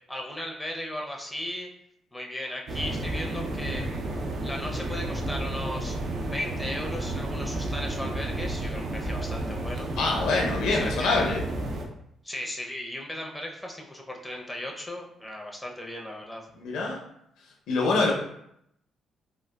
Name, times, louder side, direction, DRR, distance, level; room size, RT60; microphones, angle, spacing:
voice 1, 0.1-1.7 2.1-3.9 4.4-9.9 10.7-11.3 12.2-16.5, left 1 dB, 5° left, 0 dB, 0.5 m, -36 dB
sound 1, 2.7-11.9, right 1 dB, 60° right, 0.5 m, -31 dB
voice 2, 10.0-11.4 16.6-17.0 17.7-18.1, left 3 dB, 85° left, 0 dB, 0.5 m, -25 dB
3.6 x 2.3 x 2.2 m, 0.74 s
cardioid pair, 90°, 0 cm